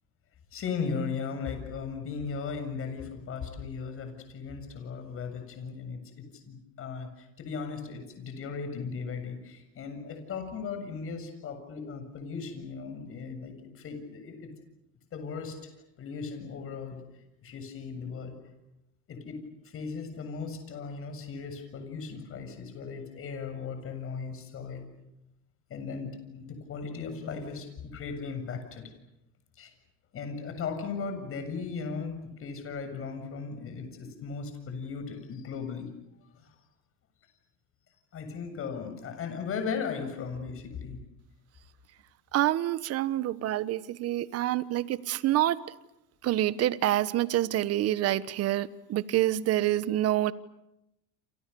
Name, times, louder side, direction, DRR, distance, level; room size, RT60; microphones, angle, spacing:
voice 1, 0.5-14.5 15.1-15.6 16.0-17.0 17.4-18.3 19.1-19.4 19.6-24.9 25.7-28.9 29.6-29.7 30.1-35.9 36.3-36.5 38.1-41.0, left 5 dB, 40° left, 7.3 m, -37 dB
voice 2, 42.3-45.6 46.2-50.3, right 13 dB, 45° right, 1.3 m, -27 dB
28.5 x 28.0 x 7.0 m
supercardioid pair, 120°, 33 cm